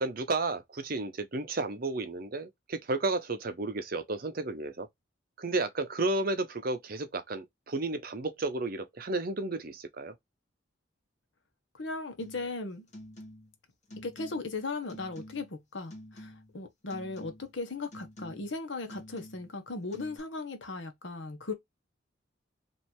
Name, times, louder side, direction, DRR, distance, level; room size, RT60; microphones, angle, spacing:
voice 1, 0.0-4.9 5.4-10.1, right 2 dB, 50° right, 0.7 m, -32 dB
voice 2, 11.7-12.9 14.0-21.5, left 3 dB, 75° left, 1.1 m, -37 dB
sound 1, 12.2-12.5 12.9-13.6 13.9-14.6 14.9-15.6 15.9-16.6 16.9-17.6 17.9-18.6 18.9-19.6 19.9-20.2, left 1 dB, 40° left, 1.3 m, -48 dB
3.2 x 2.7 x 4.4 m
head